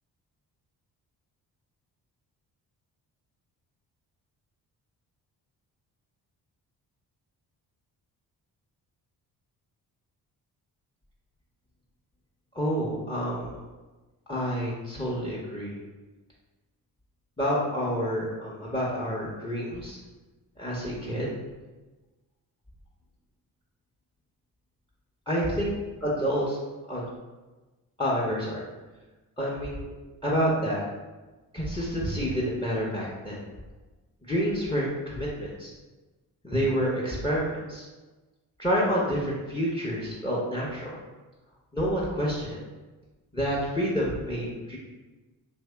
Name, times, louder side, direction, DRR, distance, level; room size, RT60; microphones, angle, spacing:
voice 1, 12.5-13.5 14.3-15.7 17.4-20.0 20.6-21.3 25.3-25.8 26.0-26.6 26.9-27.1 28.0-28.6 29.4-29.9 30.2-30.8 31.5-33.4 34.3-35.7 36.4-37.9 38.6-41.0 41.7-42.6 43.3-44.8, equal, 10° left, -4 dB, 0.8 m, -28 dB
2.9 x 2.7 x 3.4 m, 1.2 s
supercardioid pair, 50°, 44 cm